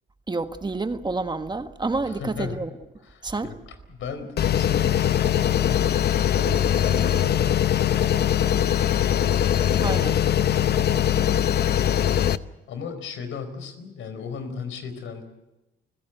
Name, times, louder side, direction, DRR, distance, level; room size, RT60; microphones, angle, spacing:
voice 1, 0.3-2.7 3.2-3.5 9.8-10.1, right 3 dB, 20° right, 1.4 m, -28 dB
voice 2, 2.1-2.6 3.0-3.6 3.9-10.6 11.0-11.9 12.7-15.2, left 5 dB, 80° left, 4.6 m, -36 dB
sound 1, 4.4-12.4, left 10 dB, 55° left, 0.8 m, -21 dB
29.5 x 17.0 x 8.1 m
cardioid pair, 90°, 20 cm